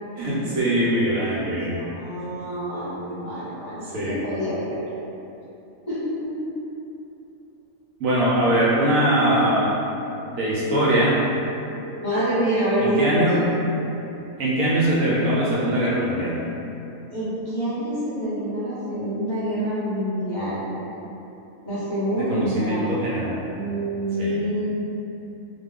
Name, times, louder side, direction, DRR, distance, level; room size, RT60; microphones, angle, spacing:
voice 1, 0.2-1.8 3.9-4.2 8.0-9.8 10.3-11.2 12.8-13.4 14.4-16.4 22.2-23.6 24.2-24.4, right 1 dB, 70° right, -7 dB, 0.9 m, -22 dB
voice 2, 1.8-4.8 5.9-6.3 12.0-13.4 17.1-20.6 21.6-22.9 23.5-24.8, right 1 dB, 35° left, -13 dB, 1.0 m, -26 dB
2.4 x 2.2 x 3.5 m, 2.9 s
omnidirectional pair, 1.6 m